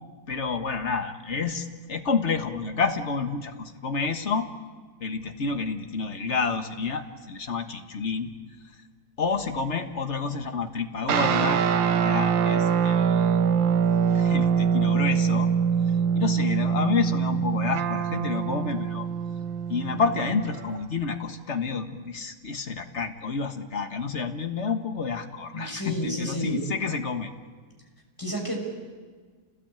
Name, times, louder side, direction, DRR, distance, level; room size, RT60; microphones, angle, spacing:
voice 1, 0.3-4.5 5.0-8.3 9.2-13.4 14.1-15.5 16.1-19.1 19.7-27.3, left 5 dB, 40° left, 6 dB, 1.6 m, -29 dB
sound 1, 11.1-20.8, right 7 dB, 75° right, 1.6 m, -24 dB
voice 2, 25.5-26.7 28.2-28.6, right 1 dB, 10° left, 0 dB, 5.9 m, -31 dB
29.5 x 19.0 x 9.0 m, 1.5 s
omnidirectional pair, 2.1 m